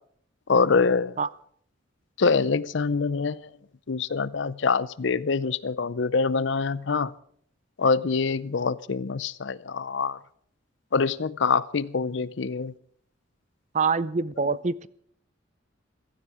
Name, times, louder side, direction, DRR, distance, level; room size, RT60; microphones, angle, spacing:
voice 1, 0.5-1.1 2.2-3.4 3.9-7.1 7.8-10.2 10.9-12.7, left 4 dB, 60° left, 19 dB, 0.6 m, -25 dB
voice 2, 13.7-14.9, right 5 dB, 35° right, 19 dB, 0.5 m, -25 dB
16.5 x 15.0 x 4.9 m, 0.64 s
head